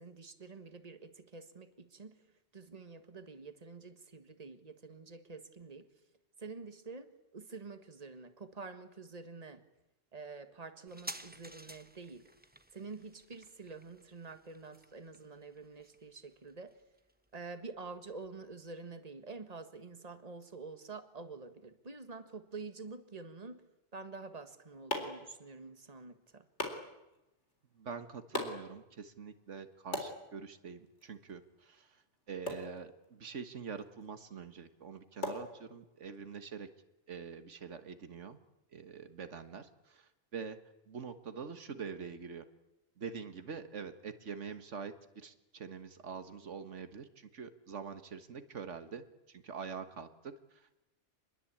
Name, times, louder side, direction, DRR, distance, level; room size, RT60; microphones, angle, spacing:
voice 1, 0.0-2.2 2.5-5.9 6.4-9.6 10.1-12.4 12.7-16.8 17.3-23.6 23.9-26.5, right 4 dB, 35° right, 9 dB, 1.7 m, -48 dB
sound 1, 10.9-18.0 18.2-18.3, right 1 dB, 10° right, 1.1 m, -52 dB
sound 2, 24.2-36.2, left 2 dB, 70° left, 4.3 m, -45 dB
voice 2, 27.8-32.0 32.3-36.7 37.1-38.4 38.7-40.6 40.9-42.4 43.0-50.8, right 6 dB, 85° right, 10 dB, 1.7 m, -45 dB
27.0 x 21.0 x 8.7 m, 0.94 s
omnidirectional pair, 1.2 m